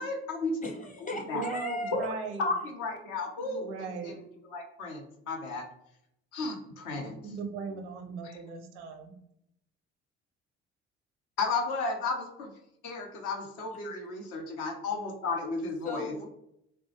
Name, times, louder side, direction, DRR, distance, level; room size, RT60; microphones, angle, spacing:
voice 1, 0.0-0.6 1.0-1.4 1.9-2.1 2.4-3.7 4.0-5.7 6.3-7.1 8.2-8.4 11.4-12.5 12.8-16.2, left 3 dB, 65° left, 2 dB, 0.7 m, -33 dB
voice 2, 0.6-2.1 13.8-14.0 15.8-16.2, left 3 dB, 25° left, 1 dB, 0.8 m, -37 dB
voice 3, 1.2-2.5 3.4-4.2 6.8-9.1, right 4 dB, 75° right, 5 dB, 0.5 m, -38 dB
3.5 x 2.1 x 2.9 m, 0.77 s
figure-of-eight pair, 50°, 34 cm